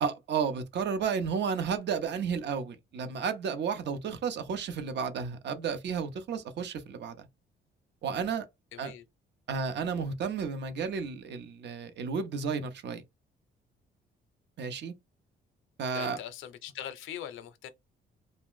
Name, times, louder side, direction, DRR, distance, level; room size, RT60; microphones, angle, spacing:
voice 1, 0.0-7.3 8.0-8.5 8.8-8.9 9.5-13.0 14.6-14.9 15.8-16.2, right 6 dB, 60° right, 0.6 m, -32 dB
voice 2, 8.7-9.0 15.9-17.7, left 10 dB, 80° left, 0.5 m, -41 dB
2.5 x 2.1 x 3.6 m
cardioid pair, 90°, 20 cm